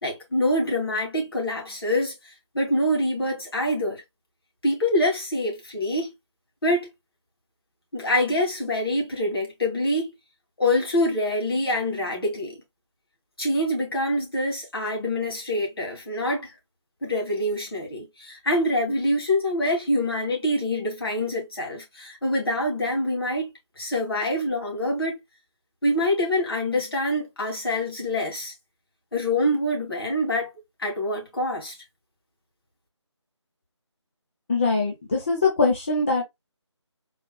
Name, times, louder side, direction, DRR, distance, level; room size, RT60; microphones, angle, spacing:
voice 1, 0.0-2.1 2.5-4.0 4.6-6.1 6.6-6.9 7.9-10.1 10.6-12.6 13.4-16.5 17.0-25.2 25.8-28.5 29.1-30.5 30.8-31.7, left 1 dB, 55° left, 2.6 m, -25 dB
voice 2, 34.5-36.2, left 3 dB, 25° left, 0.8 m, -22 dB
4.1 x 3.7 x 2.2 m
figure-of-eight pair, 160°, 15 cm